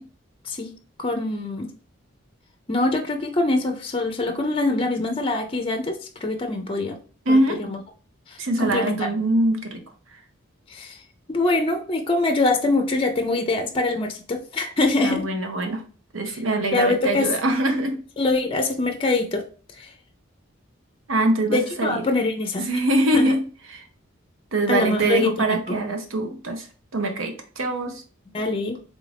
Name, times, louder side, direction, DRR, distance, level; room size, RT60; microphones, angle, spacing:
voice 1, 1.0-1.7 2.7-7.0 7.3-7.8 8.3-9.0 10.7-11.0 11.3-15.3 16.3-16.4 16.7-17.3 18.2-19.4 19.8-19.9 21.5-22.7 23.1-23.3 24.7-25.8 28.3-28.8, left 2 dB, 25° left, 5 dB, 0.5 m, -24 dB
voice 2, 7.3-7.6 8.4-9.8 15.0-15.8 16.1-18.0 21.1-22.0 22.6-23.4 23.7-23.8 24.5-26.7 26.9-28.0, right 1 dB, 80° right, 5 dB, 0.8 m, -23 dB
3.7 x 2.5 x 3.3 m, 0.40 s
head